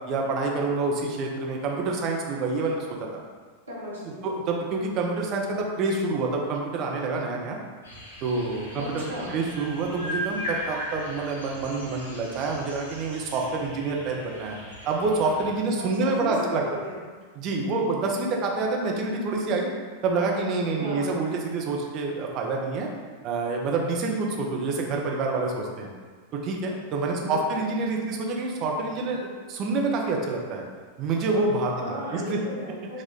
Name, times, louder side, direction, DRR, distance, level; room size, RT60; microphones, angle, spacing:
voice 1, 0.1-2.9 3.1-3.2 4.2-7.6 8.2-9.0 9.3-14.6 14.8-16.6 17.4-19.7 20.0-22.9 23.2-25.9 26.3-30.7 31.0-32.4, right 3 dB, 35° right, 0 dB, 0.6 m, -27 dB
voice 2, 3.7-4.4 8.8-9.4 15.8-17.0 17.8-18.0 20.8-21.3 27.2-27.6 31.8-33.0, left 1 dB, 85° right, -9 dB, 1.4 m, -36 dB
sound 1, 7.8-15.5, equal, 70° left, 1.4 m, -38 dB
4.3 x 2.4 x 3.6 m, 1.5 s
figure-of-eight pair, 90°, 0 cm